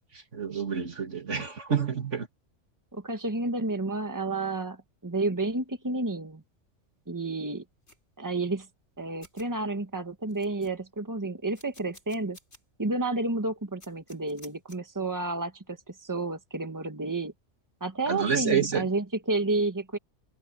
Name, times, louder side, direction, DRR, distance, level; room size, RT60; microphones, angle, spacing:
voice 1, 0.3-2.3 18.1-18.9, right 6 dB, 90° right, 2.9 m, -28 dB
voice 2, 2.9-4.8 5.0-6.4 7.1-7.6 8.2-8.7 9.0-12.4 12.8-17.3 17.8-20.0, right 2 dB, 15° right, 1.6 m, -30 dB
sound 1, 7.9-8.0 8.9-9.0 9.2-9.5 9.9-10.0 10.3-11.0 11.5-12.6 13.0-13.1 13.8-14.8, left 1 dB, 70° left, 8.4 m, -53 dB
omnidirectional pair, 1.2 m